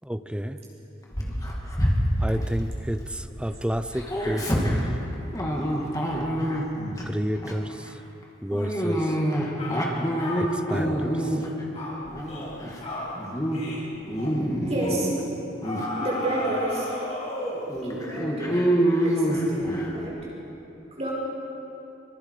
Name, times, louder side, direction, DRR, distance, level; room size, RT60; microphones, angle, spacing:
voice 1, 0.1-0.6 2.2-3.0 3.4-4.7 7.1-7.7 8.4-9.0 10.4-11.1, equal, 5° right, 10 dB, 0.7 m, -29 dB
Dog, 1.1-3.4 3.7-7.0 7.4-7.7 8.5-11.6 12.0-12.8 13.2-13.6 13.9-15.2 15.6-15.9 16.5-16.6 16.9-17.0 17.7-20.0, equal, 20° left, 2.7 m, -26 dB
sound 1, 9.0-9.2 9.6-9.8 10.2-10.9 11.2-11.5 11.7-12.0 12.3-12.5 12.8-13.1 13.5-13.8 14.1-14.4 14.8-15.0 15.6-17.7, left 1 dB, 35° left, 5.9 m, -34 dB
voice 2, 14.7-15.1 16.0-16.9 17.8-18.6 19.0-20.2 21.0-21.1, right 1 dB, 35° right, -4 dB, 5.3 m, -30 dB
25.5 x 23.5 x 5.0 m, 2.9 s
head